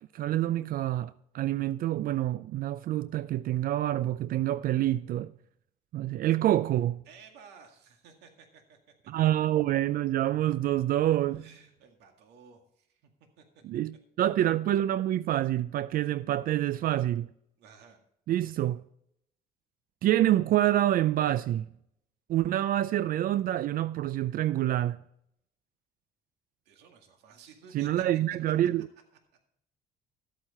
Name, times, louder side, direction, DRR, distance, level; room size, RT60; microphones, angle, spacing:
voice 1, 0.1-5.3 5.9-7.0 9.1-11.4 13.6-17.3 18.3-18.8 20.0-21.7 22.3-25.0 27.7-28.9, right 13 dB, 60° right, 0.4 m, -27 dB
voice 2, 7.1-8.8 11.3-13.1 13.4-13.6 17.6-18.0 26.7-28.0, right 6 dB, 85° right, 2.0 m, -55 dB
13.0 x 8.9 x 4.2 m
cardioid pair, 110°, 17 cm